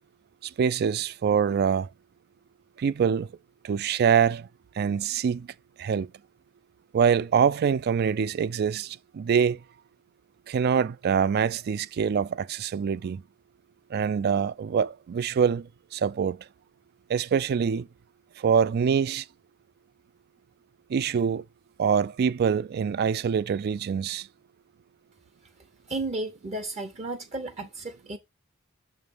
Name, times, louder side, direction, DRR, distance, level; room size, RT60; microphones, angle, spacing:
voice 1, 0.4-1.9 2.8-3.3 3.6-4.5 4.8-5.5 5.8-6.1 6.9-9.6 10.5-13.2 13.9-16.4 17.1-17.9 18.4-19.2 20.9-21.4 21.8-24.3, right 7 dB, 50° right, 0.3 m, -25 dB
voice 2, 25.9-28.2, right 2 dB, 30° right, 0.7 m, -33 dB
6.9 x 3.1 x 5.3 m
head